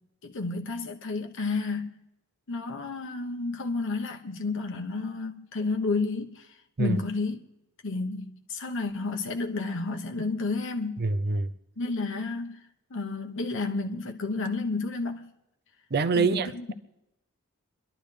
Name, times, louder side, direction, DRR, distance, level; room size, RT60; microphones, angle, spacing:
voice 1, 0.2-1.9 2.5-6.5 6.8-7.4 7.8-11.0 11.8-12.6 12.9-15.3 16.1-16.7, left 3 dB, 60° left, 1.1 m, -31 dB
voice 2, 11.0-11.5 15.9-16.7, right 4 dB, 50° right, 0.6 m, -26 dB
26.5 x 12.0 x 3.4 m
head